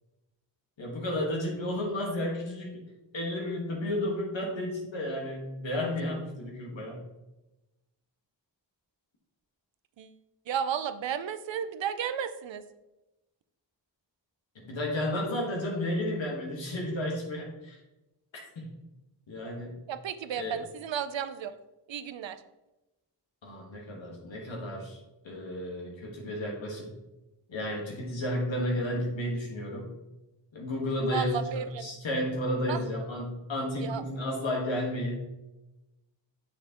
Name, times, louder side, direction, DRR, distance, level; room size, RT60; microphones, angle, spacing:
voice 1, 0.8-2.8 3.1-7.0 14.5-17.8 18.5-18.7 19.3-19.8 20.3-20.6 23.4-25.0 25.2-26.9 27.5-29.9 30.5-35.2, left 1 dB, 80° left, -1 dB, 1.6 m, -32 dB
voice 2, 10.5-12.6 19.9-21.6 21.9-22.4 31.0-31.9 32.7-32.8 33.8-34.0, right 8 dB, 75° right, 12 dB, 0.6 m, -33 dB
6.7 x 6.0 x 3.0 m, 1.0 s
cardioid pair, 55°, 45 cm